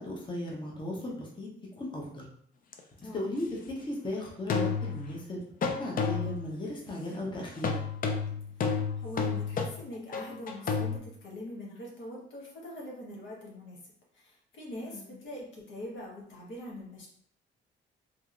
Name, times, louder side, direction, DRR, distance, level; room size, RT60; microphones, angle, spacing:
voice 1, 0.0-1.5 1.7-2.2 3.1-7.8 14.8-15.1, left 1 dB, 25° left, -2 dB, 0.8 m, -37 dB
sound 1, 2.7-2.8 4.5-5.2 5.6-6.5 7.6-11.0, left 5 dB, 45° left, 0.4 m, -31 dB
voice 2, 8.6-13.8 14.1-17.1, left 1 dB, 70° left, -3 dB, 1.0 m, -43 dB
2.9 x 2.8 x 2.4 m, 0.65 s
cardioid pair, 90°, 20 cm